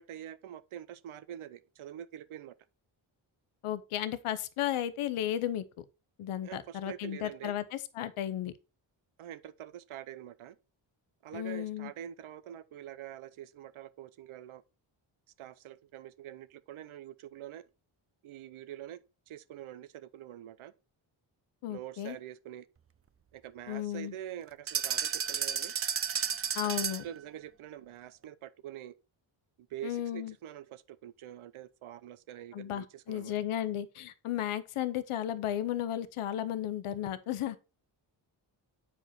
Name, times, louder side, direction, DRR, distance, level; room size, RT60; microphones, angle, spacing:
voice 1, 0.0-2.5 6.4-7.6 9.2-10.6 11.2-14.6 15.4-17.7 18.2-20.7 21.7-22.7 23.3-25.7 27.0-29.0 29.7-33.3, right 11 dB, 80° right, 0.9 m, -45 dB
voice 2, 3.6-5.8 6.2-8.5 11.3-11.9 21.6-22.2 23.7-24.1 26.5-27.1 29.8-30.3 32.5-37.6, left 11 dB, 90° left, 0.8 m, -34 dB
sound 1, 24.7-27.2, right 7 dB, 30° right, 0.5 m, -32 dB
8.7 x 5.0 x 4.2 m
cardioid pair, 75°, 49 cm